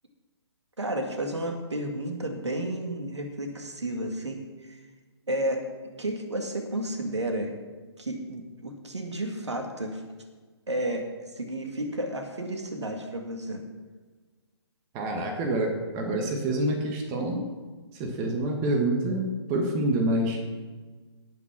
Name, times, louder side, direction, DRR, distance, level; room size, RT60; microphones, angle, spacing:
voice 1, 0.8-4.8 5.3-5.7 6.0-7.5 8.0-10.0 10.7-13.6, right 1 dB, 75° right, 4 dB, 2.2 m, -32 dB
voice 2, 14.9-17.5 17.9-20.4, right 1 dB, 20° right, 3 dB, 1.5 m, -27 dB
17.5 x 6.0 x 5.9 m, 1.4 s
figure-of-eight pair, 135°, 15 cm